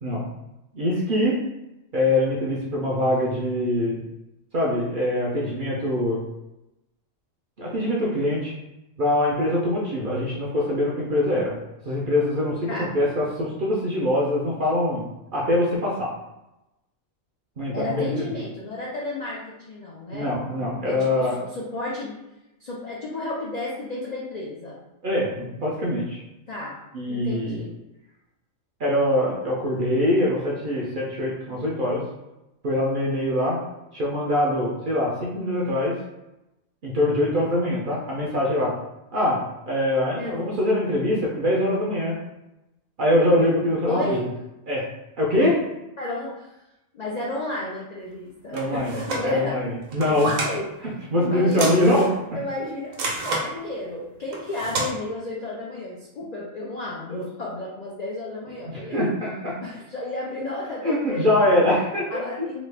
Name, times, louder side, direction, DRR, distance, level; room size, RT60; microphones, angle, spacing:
voice 1, 0.0-0.3 0.7-1.4 1.9-4.0 4.5-6.2 7.6-8.5 9.0-11.6 11.8-15.0 15.3-16.1 17.6-18.3 20.1-21.4 25.0-26.2 26.9-27.6 28.8-32.0 32.6-33.6 33.9-35.9 36.8-38.7 39.1-39.4 39.7-42.2 43.0-44.2 44.7-44.8 45.2-45.6 48.5-48.9 49.2-50.3 51.1-52.1 58.7-59.6 60.8-62.2, left 1 dB, 55° right, -4 dB, 0.6 m, -23 dB
voice 2, 17.7-20.3 20.8-22.2 22.6-24.8 26.5-26.8 27.1-27.7 40.1-40.6 43.9-44.3 46.0-46.6 46.9-49.6 50.0-51.8 52.3-53.0 53.2-59.0 59.6-61.4 62.1-62.6, left 2 dB, 60° left, -5 dB, 0.4 m, -32 dB
sound 1, 48.5-49.3 49.9-50.6 51.5-52.2 52.9-53.5 54.3-54.9, right 3 dB, 80° right, 1.1 m, -29 dB
3.1 x 2.3 x 3.3 m, 0.94 s
omnidirectional pair, 1.4 m